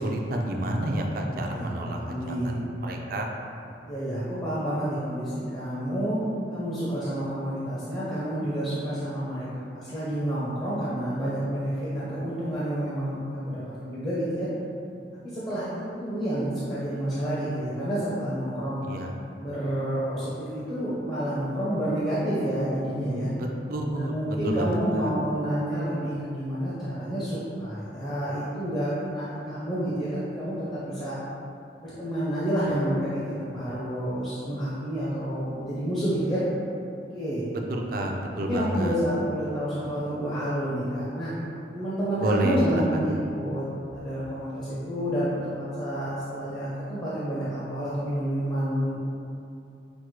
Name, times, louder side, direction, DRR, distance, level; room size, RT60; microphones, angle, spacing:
voice 1, 0.0-2.2 2.4-3.3 18.8-19.1 23.4-25.1 37.5-39.0 42.2-43.1, right 1 dB, 55° right, 1 dB, 0.4 m, -29 dB
voice 2, 1.3-1.7 2.0-2.6 3.8-6.2 6.5-14.5 15.2-18.9 19.4-23.3 23.9-31.2 31.8-36.4 37.1-37.4 38.4-41.3 41.7-49.0, equal, 25° left, -10 dB, 0.7 m, -29 dB
6.0 x 2.1 x 3.1 m, 2.7 s
head